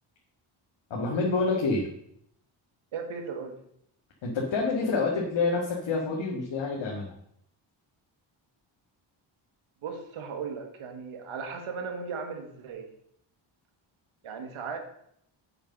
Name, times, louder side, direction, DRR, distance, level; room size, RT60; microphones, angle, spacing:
voice 1, 0.9-1.9 4.2-7.1, left 3 dB, 65° left, -2 dB, 1.9 m, -27 dB
voice 2, 2.9-3.6 9.8-12.9 14.2-14.8, right 5 dB, 85° right, 4 dB, 1.8 m, -36 dB
6.9 x 5.5 x 6.6 m, 0.70 s
cardioid pair, 85°, 48 cm